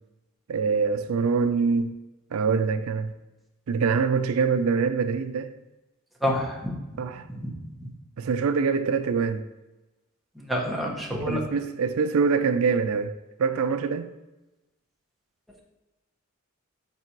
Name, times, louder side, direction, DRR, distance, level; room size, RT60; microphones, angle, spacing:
voice 1, 0.5-2.0 2.3-3.1 3.7-5.5 7.0-7.2 8.2-9.5 11.3-14.1, right 5 dB, 70° right, 0.4 m, -24 dB
voice 2, 6.2-6.8 7.3-7.4 10.4-11.4, equal, ahead, 0.9 m, -28 dB
5.2 x 4.1 x 4.5 m
head